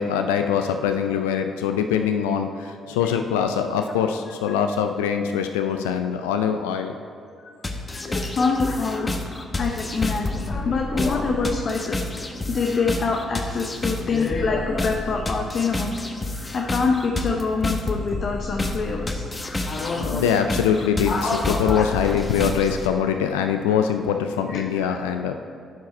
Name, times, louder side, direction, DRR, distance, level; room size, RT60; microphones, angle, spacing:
voice 1, 0.0-6.9 20.0-25.3, left 8 dB, 85° left, 6 dB, 0.3 m, -23 dB
sound 1, 7.6-22.9, left 2 dB, 30° left, 0.9 m, -30 dB
voice 2, 7.9-9.1 9.5-16.2 16.5-19.2 19.6-20.3 21.1-21.9 24.5-25.0, left 4 dB, 55° left, 2 dB, 0.7 m, -26 dB
11.5 x 4.9 x 4.3 m, 2.3 s
hypercardioid pair, 50°, 0 cm